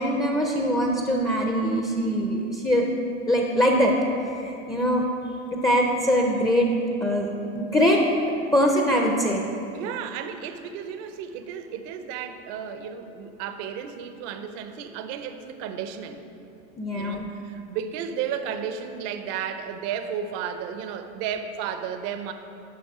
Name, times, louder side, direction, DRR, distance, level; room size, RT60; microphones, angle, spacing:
voice 1, 0.0-2.9 3.3-3.9 4.3-5.0 5.5-6.7 7.0-7.3 7.5-8.1 8.5-9.4 16.8-17.3, equal, 10° left, 0 dB, 0.5 m, -22 dB
voice 2, 9.7-16.2 16.9-22.3, right 8 dB, 50° right, 9 dB, 0.7 m, -33 dB
12.0 x 4.1 x 4.8 m, 2.7 s
hypercardioid pair, 110°, 39 cm